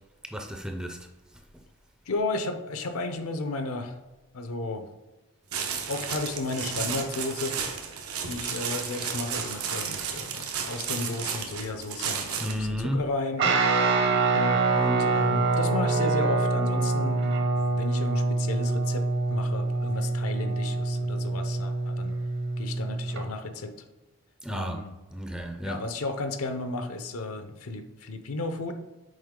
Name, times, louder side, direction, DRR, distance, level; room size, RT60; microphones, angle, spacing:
voice 1, 0.2-1.1 1.5-1.6 12.4-13.1 24.4-24.9 25.1-25.8, equal, 5° right, 0.4 m, -32 dB
voice 2, 2.1-4.0 4.3-4.9 5.9-7.6 8.3-13.6 14.3-22.1 22.6-23.7 24.5-24.9 25.6-28.8, left 2 dB, 80° left, 0.6 m, -33 dB
sound 1, 5.5-12.7, right 7 dB, 85° right, 0.9 m, -33 dB
Guitar, 13.4-23.2, right 3 dB, 50° right, 0.8 m, -25 dB
6.4 x 4.3 x 3.7 m
head